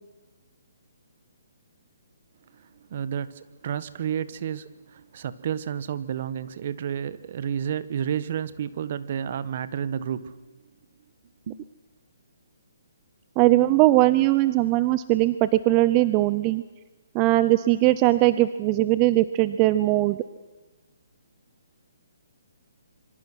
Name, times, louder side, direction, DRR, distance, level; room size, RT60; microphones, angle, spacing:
voice 1, 2.6-10.4 11.5-11.6, right 9 dB, 50° right, 1.3 m, -31 dB
voice 2, 13.4-16.6 17.1-20.2, right 17 dB, 25° right, 0.7 m, -20 dB
26.0 x 24.0 x 6.2 m
hypercardioid pair, 145°, 0 cm